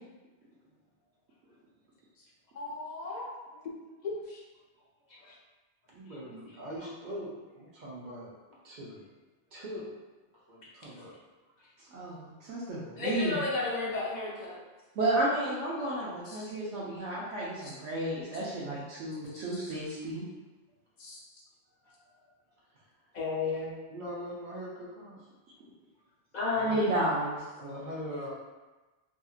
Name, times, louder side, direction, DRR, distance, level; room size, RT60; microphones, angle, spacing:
voice 1, 2.5-3.3 4.0-4.4 5.1-5.3 13.0-14.6 16.3-16.5 17.6-17.8 19.3-19.4 21.0-21.2 23.1-23.7 26.3-26.9, left 3 dB, 45° left, -5 dB, 0.6 m, -33 dB
voice 2, 5.9-8.3 8.6-9.0 9.5-9.8 10.5-11.2 21.8-22.2 23.9-25.3 26.5-26.9 27.6-28.3, equal, 45° right, -5 dB, 0.7 m, -42 dB
voice 3, 11.9-13.4 15.0-20.2 26.6-27.4, right 1 dB, 90° right, -7 dB, 0.9 m, -32 dB
2.7 x 2.5 x 2.4 m, 1.2 s
omnidirectional pair, 1.2 m